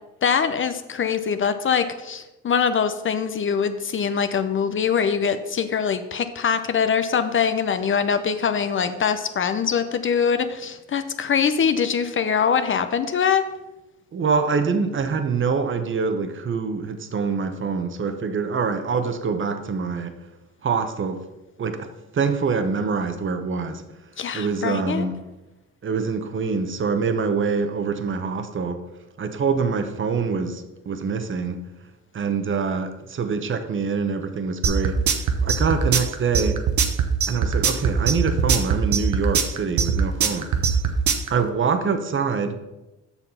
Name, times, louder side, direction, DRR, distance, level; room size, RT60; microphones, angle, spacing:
voice 1, 0.2-13.5 24.2-25.0, left 7 dB, 40° left, 0.6 m, -23 dB
voice 2, 14.1-20.1 20.6-21.2 21.6-23.8 24.3-25.2 25.8-28.8 29.2-31.7 32.1-35.0 35.4-36.6 37.3-40.8 41.3-42.6, right 5 dB, 40° right, 1.0 m, -25 dB
sound 1, 34.6-41.3, right 6 dB, 70° right, 1.1 m, -21 dB
7.1 x 5.8 x 5.6 m
cardioid pair, 90°, 30 cm